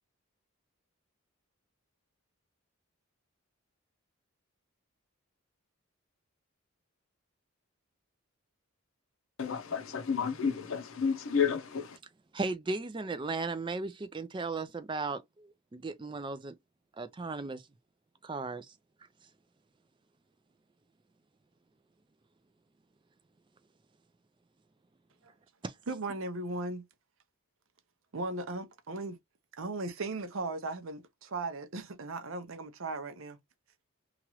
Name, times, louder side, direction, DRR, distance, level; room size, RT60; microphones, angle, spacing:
voice 1, 9.4-12.0, left 6 dB, 65° left, 0.6 m, -31 dB
voice 2, 12.3-16.6 17.0-17.6 18.2-18.7 25.6-25.7, right 3 dB, 20° right, 0.3 m, -36 dB
voice 3, 25.9-26.9 28.1-29.2 29.6-33.4, right 2 dB, 65° right, 0.6 m, -37 dB
2.9 x 2.4 x 2.9 m
head